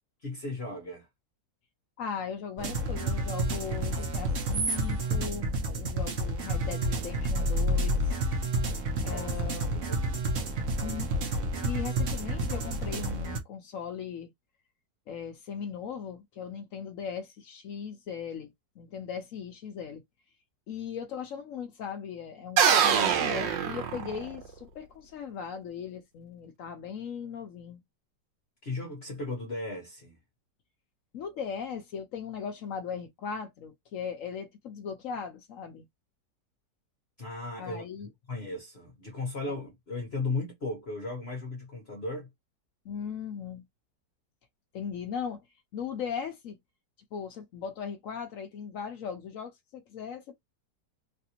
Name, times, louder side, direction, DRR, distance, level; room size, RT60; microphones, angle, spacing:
voice 1, 0.2-1.1 9.0-9.3 9.7-10.2 28.6-30.2 37.2-42.3, left 3 dB, 45° left, 1.0 m, -36 dB
voice 2, 2.0-8.1 9.0-9.8 10.8-11.1 11.6-14.3 15.1-20.0 20.7-27.8 31.1-35.9 37.6-38.1 42.8-43.6 44.7-45.4 45.7-46.6 47.1-50.3, left 7 dB, 70° left, 0.8 m, -38 dB
sound 1, 2.6-13.4, right 1 dB, 55° right, 0.9 m, -30 dB
sound 2, 22.6-24.5, right 8 dB, 80° right, 1.4 m, -24 dB
3.3 x 2.5 x 2.8 m
omnidirectional pair, 2.0 m